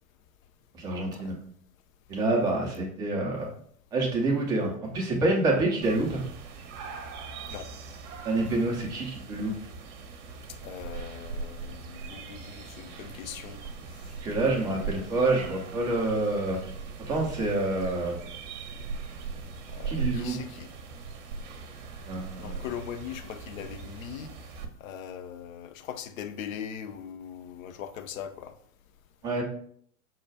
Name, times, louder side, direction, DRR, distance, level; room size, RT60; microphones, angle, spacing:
voice 1, 0.7-1.3 2.1-3.5 3.9-6.2 8.2-9.5 14.2-16.6 17.1-18.2 19.9-20.4 22.0-22.6 29.2-29.4, right 2 dB, 10° right, 0.3 m, -27 dB
sound 1, 5.8-24.6, right 4 dB, 50° right, 0.7 m, -40 dB
voice 2, 10.6-13.6 14.4-15.2 19.7-20.7 22.4-24.3 24.8-28.5, left 8 dB, 60° left, 0.6 m, -40 dB
5.5 x 2.2 x 3.3 m
figure-of-eight pair, 95°, 47 cm